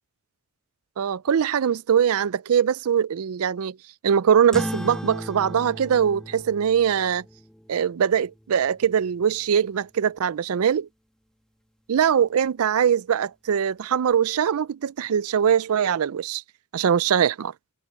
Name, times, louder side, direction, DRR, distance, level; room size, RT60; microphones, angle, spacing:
voice 1, 1.0-3.8 4.0-7.2 7.7-10.9 11.9-16.4 16.7-17.5, right 8 dB, 70° right, 0.4 m, -22 dB
sound 1, 4.5-9.4, equal, 5° left, 1.8 m, -37 dB
head